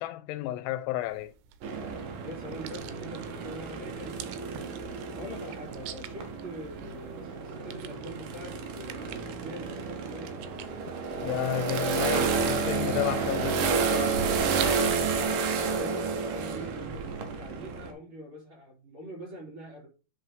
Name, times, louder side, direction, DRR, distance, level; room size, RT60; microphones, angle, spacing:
voice 1, 0.0-1.3 11.2-14.3, left 13 dB, 90° left, 2.8 m, -32 dB
sound 1, 1.0-15.0, right 11 dB, 90° right, 2.9 m, -47 dB
sound 2, 1.6-17.9, right 5 dB, 70° right, 2.4 m, -31 dB
voice 2, 2.2-4.7 5.2-10.4 15.4-19.9, equal, 30° right, 3.7 m, -44 dB
10.5 x 4.0 x 3.5 m
omnidirectional pair, 4.7 m